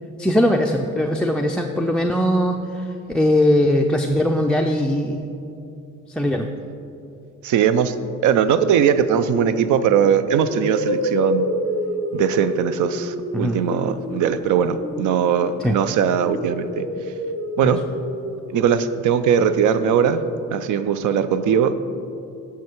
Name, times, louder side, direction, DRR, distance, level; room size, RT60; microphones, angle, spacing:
voice 1, 0.2-2.6 3.1-5.2 6.2-6.5 13.3-13.6 15.6-15.8 17.6-17.7, left 1 dB, 5° left, 4 dB, 0.3 m, -20 dB
voice 2, 7.4-7.9 8.2-11.5 12.1-16.8 17.6-17.8 18.5-20.2 20.5-21.8, right 8 dB, 75° right, 12 dB, 0.5 m, -20 dB
sound 1, 9.3-9.6 10.4-15.7 16.2-20.1, equal, 45° right, 2.1 m, -29 dB
9.5 x 5.8 x 4.4 m, 2.7 s
cardioid pair, 90°, 30 cm